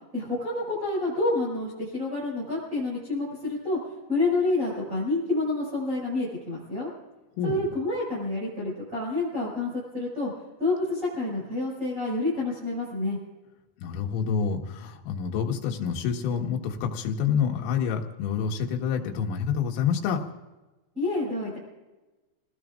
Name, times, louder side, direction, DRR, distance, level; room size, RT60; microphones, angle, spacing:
voice 1, 0.1-3.8 4.1-6.9 7.4-10.3 10.6-13.2 20.9-21.6, left 2 dB, 15° right, -6 dB, 5.6 m, -28 dB
voice 2, 7.4-7.7 13.8-20.2, left 7 dB, 90° left, 2 dB, 4.2 m, -28 dB
29.0 x 18.5 x 2.5 m, 1.1 s
omnidirectional pair, 5.8 m